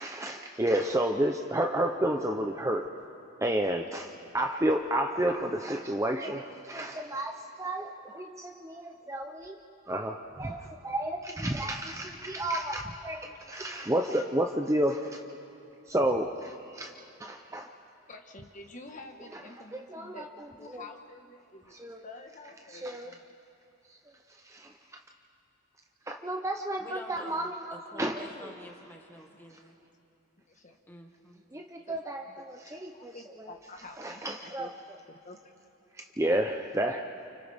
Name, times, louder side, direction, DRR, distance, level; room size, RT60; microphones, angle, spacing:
voice 1, 0.0-2.9 3.4-9.6 9.9-15.2 15.9-16.9 17.2-17.7 19.9-20.8 21.8-22.0 22.7-23.1 24.4-24.7 26.1-28.2 31.5-33.1 34.0-34.7 36.2-37.1, right 1 dB, 15° right, 3 dB, 0.7 m, -31 dB
voice 2, 18.1-23.3 30.5-30.8 31.8-34.7 35.1-35.5 36.0-36.1, left 2 dB, 35° left, 3 dB, 1.4 m, -49 dB
voice 3, 26.8-29.8 30.9-31.5, left 1 dB, 10° left, 1 dB, 1.9 m, -48 dB
30.0 x 29.0 x 3.5 m, 2.9 s
head